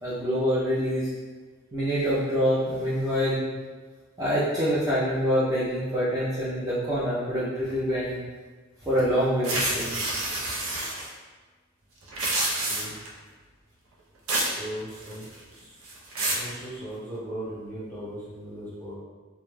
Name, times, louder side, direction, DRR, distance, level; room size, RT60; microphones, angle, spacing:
voice 1, 0.0-1.1 1.7-3.4 4.2-8.2 8.8-9.9, equal, 15° right, -11 dB, 0.4 m, -25 dB
sound 1, 9.4-11.1 12.0-13.1 14.3-14.6 14.9-15.4 15.8-16.5, right 2 dB, 70° right, 0.5 m, -28 dB
voice 2, 12.7-13.0 14.6-15.8 16.2-18.9, right 1 dB, 10° left, -10 dB, 0.9 m, -38 dB
2.2 x 2.0 x 3.0 m, 1.4 s
head